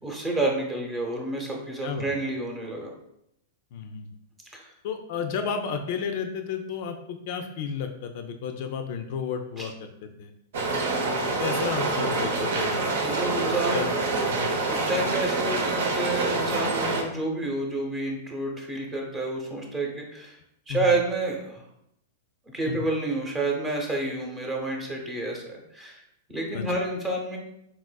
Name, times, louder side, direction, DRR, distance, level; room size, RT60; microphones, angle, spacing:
voice 1, 0.0-2.9 4.5-4.7 9.6-9.7 13.0-13.9 14.6-20.4 20.7-21.6 22.5-26.0 26.3-27.4, right 2 dB, 15° right, 0 dB, 0.7 m, -29 dB
voice 2, 3.7-4.1 4.8-10.3 11.1-12.8 13.4-13.9 14.3-14.5 20.7-20.9 22.7-22.8 26.5-26.6, left 6 dB, 55° left, 6 dB, 0.3 m, -32 dB
sound 1, 10.5-17.0, right 3 dB, 70° right, 0.6 m, -26 dB
4.0 x 2.4 x 2.2 m, 0.78 s
hypercardioid pair, 135°, 0 cm